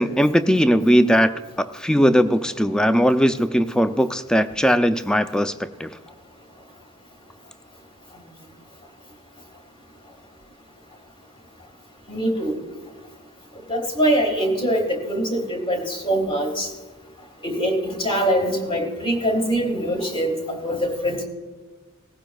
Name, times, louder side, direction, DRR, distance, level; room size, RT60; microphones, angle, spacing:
voice 1, 0.0-1.3 1.6-5.9, equal, 5° left, 10 dB, 0.3 m, -19 dB
voice 2, 12.1-12.6 13.7-16.7 17.4-21.2, right 1 dB, 25° left, 3 dB, 1.7 m, -23 dB
18.0 x 15.0 x 2.3 m, 1.3 s
head